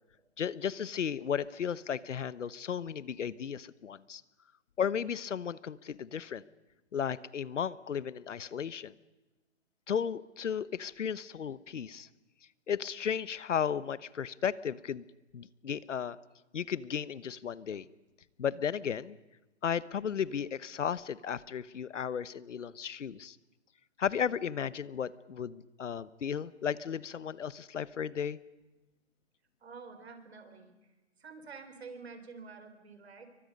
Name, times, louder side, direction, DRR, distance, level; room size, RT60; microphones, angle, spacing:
voice 1, 0.4-4.2 4.8-6.4 6.9-9.0 9.9-12.1 12.7-15.0 15.3-16.2 16.5-17.9 18.4-19.2 19.6-23.4 24.0-28.4, left 8 dB, 85° left, 18 dB, 1.0 m, -34 dB
voice 2, 29.6-30.9 31.2-33.3, right 4 dB, 60° right, 8 dB, 3.9 m, -49 dB
28.0 x 24.0 x 5.4 m, 1.1 s
hypercardioid pair, 180°, 36 cm